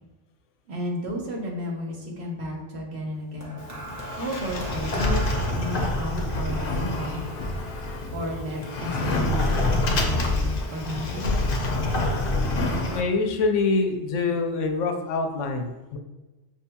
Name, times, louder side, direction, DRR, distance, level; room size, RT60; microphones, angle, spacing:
voice 1, 0.7-3.5 4.2-7.2 8.1-11.4, equal, 60° right, -1 dB, 1.1 m, -33 dB
sound 1, 3.4-7.8 8.8-9.0, right 1 dB, 20° right, 0.5 m, -38 dB
Sliding door, 3.6-13.0, left 2 dB, 60° left, 0.7 m, -26 dB
voice 2, 12.9-16.0, left 3 dB, 85° left, 4 dB, 0.9 m, -25 dB
6.1 x 2.8 x 2.2 m, 1.1 s
omnidirectional pair, 1.2 m